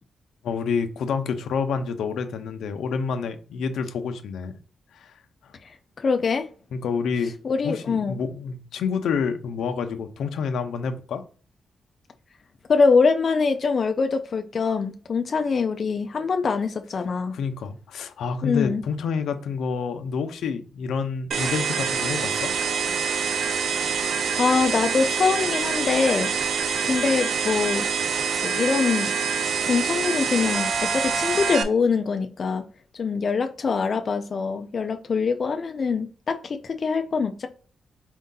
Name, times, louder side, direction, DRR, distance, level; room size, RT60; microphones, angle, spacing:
voice 1, 0.4-4.5 4.9-5.1 5.4-5.5 6.7-7.3 7.6-11.2 17.3-22.5, left 5 dB, 85° left, 0.6 m, -28 dB
voice 2, 6.0-6.5 7.4-8.2 12.7-17.4 18.4-18.8 24.4-26.3 26.8-27.9 28.4-29.1 29.7-32.6 32.9-37.5, left 5 dB, 40° left, 0.4 m, -23 dB
sound 1, 21.3-31.6, right 6 dB, 65° right, 0.5 m, -25 dB
4.4 x 2.7 x 3.7 m
wide cardioid pair, 145°, 0 cm